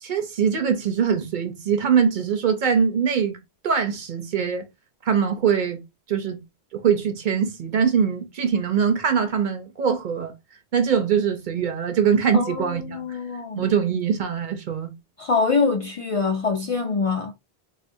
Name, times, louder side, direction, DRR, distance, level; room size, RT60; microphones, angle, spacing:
voice 1, 0.0-3.4 3.6-4.6 5.0-5.8 6.1-6.4 6.7-10.3 10.7-13.2 13.6-14.9, right 7 dB, 55° right, 0.7 m, -22 dB
voice 2, 12.3-13.6 15.2-17.3, left 4 dB, 50° left, 0.4 m, -24 dB
3.7 x 2.4 x 2.5 m
omnidirectional pair, 1.0 m